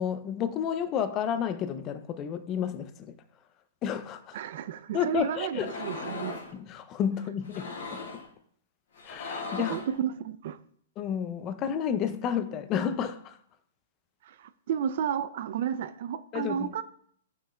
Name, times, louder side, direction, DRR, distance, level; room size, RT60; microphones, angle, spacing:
voice 1, 0.0-3.1 3.8-4.4 4.9-5.8 6.5-8.0 9.0-9.8 11.0-13.4 16.3-16.7, left 8 dB, 30° left, 0.4 m, -31 dB
voice 2, 4.3-6.4 9.6-10.6 14.2-16.8, right 9 dB, 60° right, 0.4 m, -32 dB
sound 1, 5.6-6.5 7.4-8.3 8.9-10.0, left 3 dB, 80° left, 1.8 m, -38 dB
9.3 x 6.3 x 2.2 m
hypercardioid pair, 140°, 0 cm